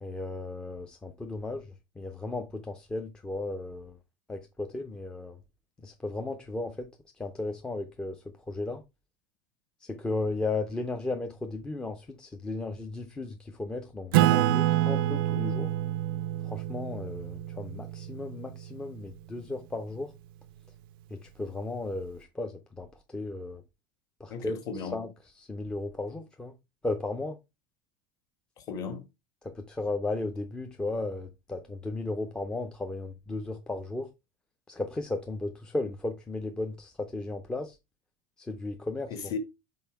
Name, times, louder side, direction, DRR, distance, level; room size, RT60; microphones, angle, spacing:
voice 1, 0.0-1.7 2.0-4.0 4.3-5.4 5.8-6.9 7.2-8.8 9.8-15.7 16.4-20.1 21.1-23.6 24.2-24.6 24.9-25.1 25.4-26.5 26.8-27.4 29.4-34.1 34.7-37.8 38.4-39.4, left 2 dB, 5° left, 0.5 m, -35 dB
Acoustic guitar / Strum, 14.1-19.1, right 14 dB, 80° right, 0.4 m, -27 dB
voice 2, 24.3-25.0 28.6-29.0 39.1-39.4, left 6 dB, 30° left, 1.1 m, -36 dB
5.4 x 4.2 x 4.5 m
supercardioid pair, 165°, 12 cm